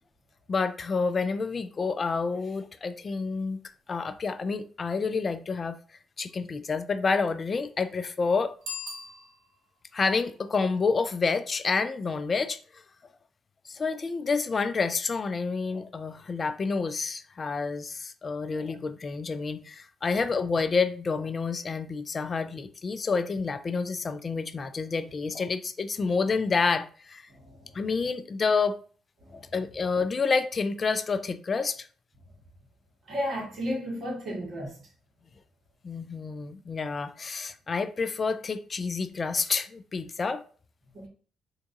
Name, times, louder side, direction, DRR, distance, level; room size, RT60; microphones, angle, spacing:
voice 1, 0.5-3.6 3.9-5.8 6.2-8.5 9.9-12.8 13.7-27.3 27.7-28.8 29.3-31.9 35.8-40.4, left 4 dB, 35° left, 0.3 m, -29 dB
Bicycle bell, 8.6-9.8, left 3 dB, 70° right, 1.9 m, -40 dB
voice 2, 33.1-34.7 40.9-41.1, equal, 50° right, 1.7 m, -32 dB
3.5 x 2.6 x 3.9 m
cardioid pair, 90°, 0 cm